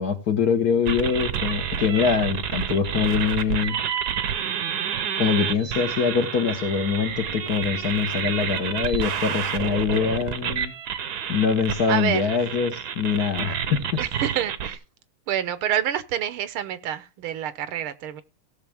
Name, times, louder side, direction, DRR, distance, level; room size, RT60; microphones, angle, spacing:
voice 1, 0.0-3.8 5.2-10.7 11.3-14.0, left 6 dB, 50° left, 1.4 m, -24 dB
sound 1, 0.9-14.8, right 8 dB, 60° right, 1.2 m, -29 dB
voice 2, 11.9-12.3 14.0-14.8 15.3-18.2, right 10 dB, 75° right, 1.7 m, -27 dB
17.0 x 6.5 x 3.4 m
omnidirectional pair, 2.4 m